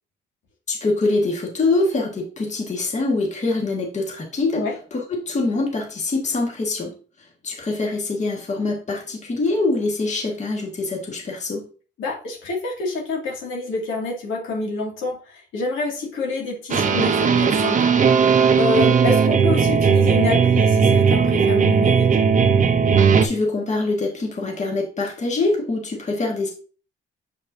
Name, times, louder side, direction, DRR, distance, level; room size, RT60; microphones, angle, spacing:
voice 1, 0.7-4.6 4.9-6.9 7.4-11.7 23.2-26.5, left 3 dB, 35° left, 0 dB, 1.7 m, -24 dB
voice 2, 12.0-18.3 18.6-22.1, left 3 dB, 80° left, -2 dB, 2.3 m, -27 dB
sound 1, 16.7-23.3, right 6 dB, 40° right, 0.7 m, -17 dB
6.8 x 5.2 x 2.7 m, 0.39 s
cardioid pair, 90°, 20 cm